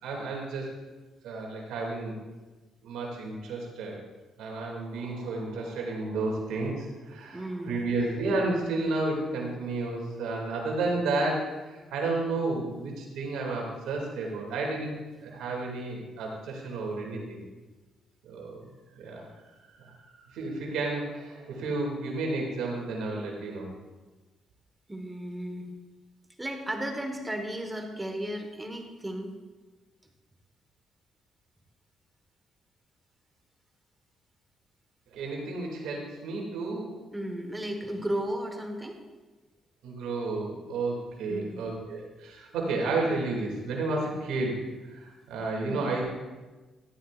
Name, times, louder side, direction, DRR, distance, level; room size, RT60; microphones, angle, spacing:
voice 1, 0.0-0.7 1.2-2.1 2.8-3.9 4.4-15.0 15.2-17.4 18.2-18.7 18.9-19.3 19.8-20.0 20.3-23.7 35.1-37.0 39.8-46.0, right 3 dB, 90° right, -1 dB, 2.4 m, -32 dB
voice 2, 7.3-7.8 24.9-25.7 26.4-29.3 37.1-39.0 41.3-41.6 45.6-45.9, right 1 dB, 15° right, 4 dB, 1.4 m, -34 dB
14.0 x 11.5 x 2.5 m, 1.2 s
cardioid pair, 90°, 0 cm